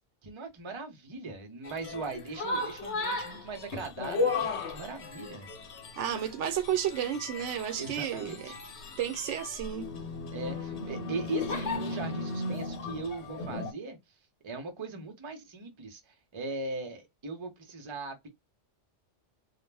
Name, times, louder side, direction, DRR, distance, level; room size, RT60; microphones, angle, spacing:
voice 1, 0.2-5.5 7.8-8.6 10.3-14.0 14.4-18.3, right 3 dB, 30° right, 0.6 m, -39 dB
sound 1, 1.6-13.7, left 3 dB, 70° left, 1.0 m, -35 dB
voice 2, 6.0-8.5 9.0-9.9, right 9 dB, 75° right, 0.9 m, -32 dB
2.3 x 2.1 x 3.2 m
omnidirectional pair, 1.2 m